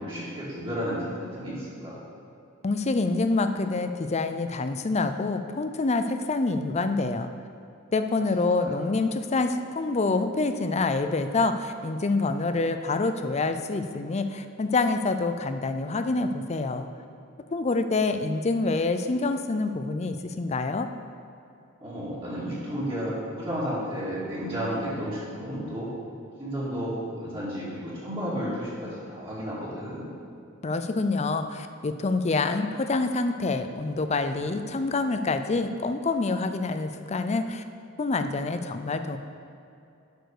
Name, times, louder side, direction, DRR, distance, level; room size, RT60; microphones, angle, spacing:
voice 1, 0.0-2.0 8.6-8.8 21.8-25.9 26.4-30.1, equal, 25° right, -9 dB, 2.4 m, -32 dB
voice 2, 2.6-7.3 7.9-16.9 17.5-20.9 30.6-37.6 38.0-39.2, left 3 dB, 30° left, 8 dB, 0.5 m, -26 dB
10.0 x 4.7 x 6.6 m, 2.7 s
head